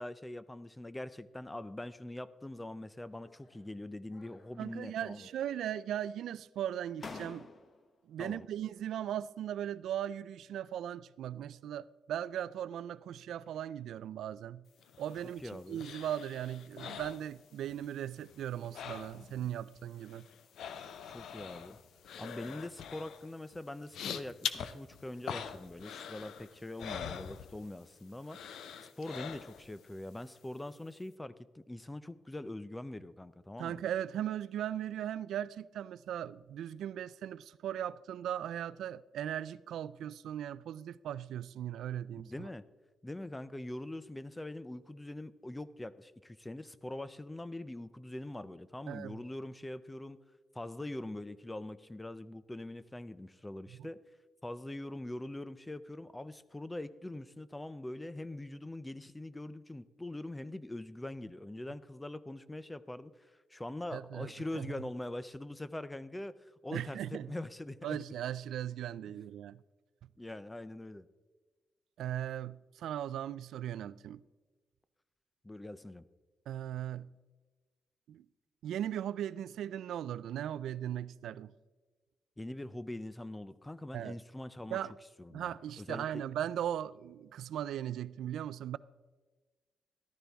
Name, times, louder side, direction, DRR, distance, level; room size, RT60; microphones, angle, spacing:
voice 1, 0.0-5.2 8.2-8.5 15.4-15.9 21.1-21.8 22.2-28.4 29.0-33.8 42.2-42.6 43.0-50.2 50.5-54.0 54.4-68.0 70.2-71.1 75.4-76.0 82.4-84.8 85.2-86.2, left 1 dB, 10° left, 0.4 m, -43 dB
sound 1, 3.1-3.7 4.1-4.9 5.2-5.9 6.6-6.7 7.0-7.9, left 4 dB, 35° left, 0.9 m, -51 dB
voice 2, 4.6-7.5 8.1-14.7 15.0-20.3 33.6-42.5 48.9-49.2 53.7-53.9 63.9-64.7 66.7-67.3 67.8-69.6 72.0-74.2 76.5-77.1 78.1-78.3 78.6-81.5 83.9-84.2 84.7-84.9 85.3-88.8, right 10 dB, 85° right, 0.3 m, -38 dB
sound 2, 14.8-17.9 18.1-19.5 19.8-27.9 28.3-29.8 30.2-30.3, left 8 dB, 75° left, 0.6 m, -44 dB
14.0 x 12.5 x 3.5 m
wide cardioid pair, 160°, 0 cm